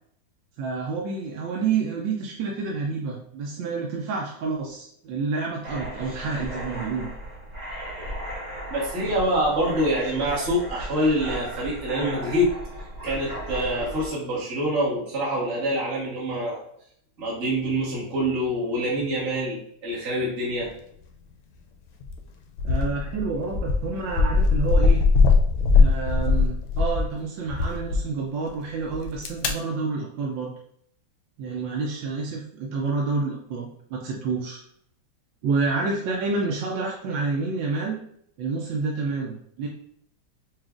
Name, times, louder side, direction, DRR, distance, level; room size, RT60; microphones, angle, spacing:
voice 1, 0.6-7.1 22.6-25.0 25.7-30.5 31.4-34.6 35.4-38.0 38.4-39.7, right 4 dB, 75° right, -1 dB, 1.3 m, -29 dB
sound 1, 5.6-14.1, equal, 55° right, 0.5 m, -36 dB
voice 2, 8.7-12.5 13.0-16.6 17.2-20.7, equal, 35° right, -6 dB, 1.4 m, -25 dB
sound 2, 22.0-22.2 22.6-27.1 27.5-28.0 28.9-29.5, left 4 dB, 80° left, 1.3 m, -20 dB
5.9 x 2.4 x 2.5 m, 0.68 s
omnidirectional pair, 2.2 m